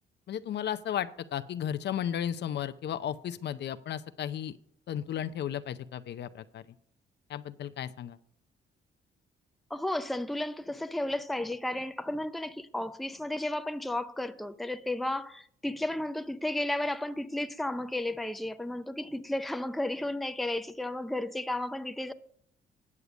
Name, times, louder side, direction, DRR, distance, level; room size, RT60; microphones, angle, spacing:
voice 1, 0.3-4.5 4.9-6.6 7.3-8.2, left 10 dB, 60° left, 0.6 m, -34 dB
voice 2, 9.7-22.1, left 1 dB, ahead, 0.5 m, -33 dB
9.6 x 6.8 x 6.1 m
cardioid pair, 90°, 20 cm